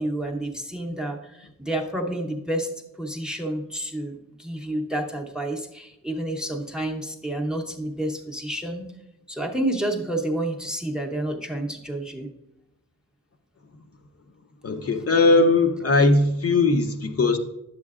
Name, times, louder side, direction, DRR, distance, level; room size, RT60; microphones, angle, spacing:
voice 1, 0.0-2.7 3.0-8.9 9.3-12.3, right 1 dB, ahead, 2 dB, 0.7 m, -29 dB
voice 2, 14.6-17.4, left 3 dB, 45° left, 5 dB, 0.7 m, -19 dB
10.0 x 7.6 x 2.4 m, 0.86 s
wide cardioid pair, 180°, 33 cm